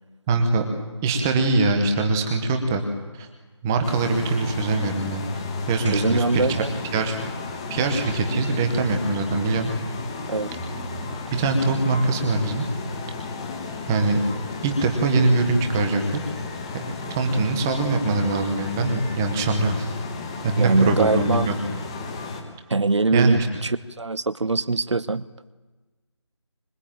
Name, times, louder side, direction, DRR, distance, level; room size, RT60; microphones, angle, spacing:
voice 1, 0.3-0.6 1.0-2.8 3.2-3.3 3.6-5.2 5.7-6.6 6.9-7.2 7.7-9.7 11.3-12.7 13.9-14.2 14.6-16.0 17.1-19.9 20.4-21.5 23.1-23.5, right 3 dB, 5° right, 5 dB, 0.9 m, -22 dB
sound 1, 3.8-22.4, left 3 dB, 10° left, 1.4 m, -33 dB
voice 2, 5.8-6.7 10.3-10.5 20.6-21.5 22.7-25.3, right 3 dB, 70° right, 17 dB, 1.1 m, -23 dB
25.0 x 21.5 x 9.0 m, 1.2 s
figure-of-eight pair, 170°, 16 cm